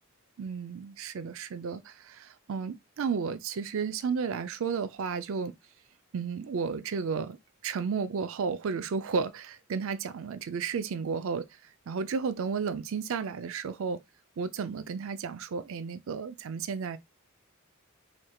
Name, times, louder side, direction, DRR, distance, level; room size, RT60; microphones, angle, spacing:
voice 1, 0.4-5.5 6.1-7.4 7.6-11.5 11.9-14.0 14.4-17.0, right 5 dB, 65° right, 0.4 m, -33 dB
4.3 x 3.2 x 2.2 m
head